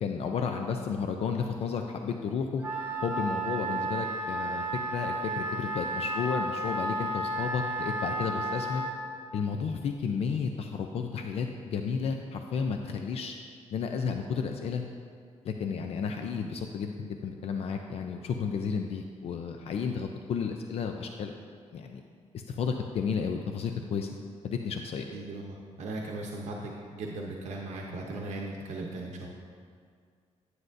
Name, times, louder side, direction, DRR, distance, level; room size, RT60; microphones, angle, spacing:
voice 1, 0.0-2.6 3.0-8.8 9.3-13.3 13.7-14.8 15.4-21.3 21.7-22.0 22.3-24.1 24.4-25.1, left 6 dB, 60° left, 4 dB, 0.4 m, -32 dB
Wind instrument woodwind instrument, 2.6-9.0, right 1 dB, 15° right, 1.0 m, -32 dB
voice 2, 25.1-29.3, right 2 dB, 75° right, -1 dB, 0.8 m, -38 dB
9.7 x 9.4 x 2.6 m, 2.1 s
wide cardioid pair, 175°, 12 cm